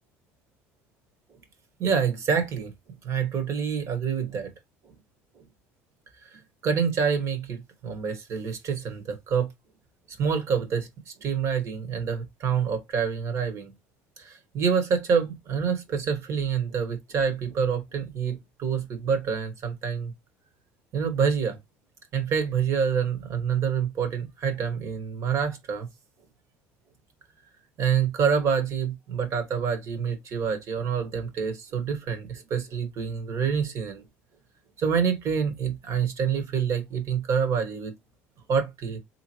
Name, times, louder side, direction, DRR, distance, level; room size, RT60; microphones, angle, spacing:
voice 1, 1.8-2.7 3.0-4.5 4.8-4.9 5.3-5.4 6.2-9.5 10.1-13.7 14.2-20.1 20.9-21.6 22.1-25.9 27.8-34.0 34.8-37.9 38.5-39.0, right 6 dB, 50° right, 1.3 m, -27 dB
3.6 x 2.9 x 2.9 m
supercardioid pair, 90°, 6 cm